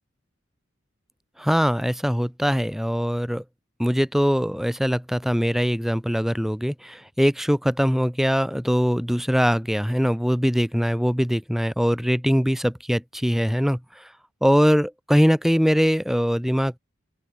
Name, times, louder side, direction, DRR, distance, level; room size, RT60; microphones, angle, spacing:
voice 1, 1.4-3.4 3.8-14.1 14.4-16.8, equal, ahead, 1.5 m, -22 dB
open air
head